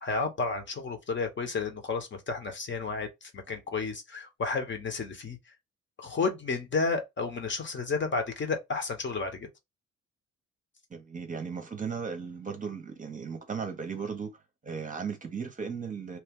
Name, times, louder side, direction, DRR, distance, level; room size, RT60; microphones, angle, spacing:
voice 1, 0.0-5.4 6.0-9.5, left 4 dB, 40° left, 0.9 m, -32 dB
voice 2, 10.9-16.2, right 6 dB, 25° right, 0.8 m, -36 dB
3.0 x 2.2 x 3.5 m
cardioid pair, 90°, 30 cm